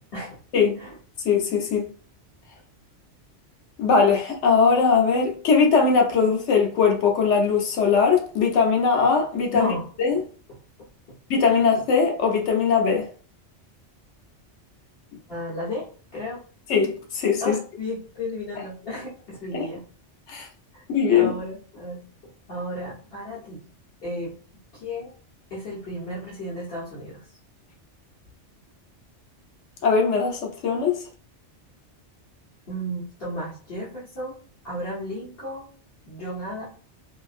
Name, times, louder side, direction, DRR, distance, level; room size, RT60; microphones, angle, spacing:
voice 1, 1.2-1.9 3.8-9.7 10.0-10.2 11.3-13.1 16.7-17.6 19.5-19.6 20.3-20.5 20.9-21.3 29.8-31.0, left 5 dB, 80° left, 0.9 m, -20 dB
voice 2, 9.5-9.9 15.3-16.4 17.4-19.8 20.7-20.8 21.1-23.6 24.0-24.4 24.7-25.1 25.5-27.4 32.7-34.4 34.6-35.7 36.1-36.6, left 1 dB, 55° left, 1.2 m, -33 dB
2.8 x 2.5 x 2.4 m
omnidirectional pair, 1.2 m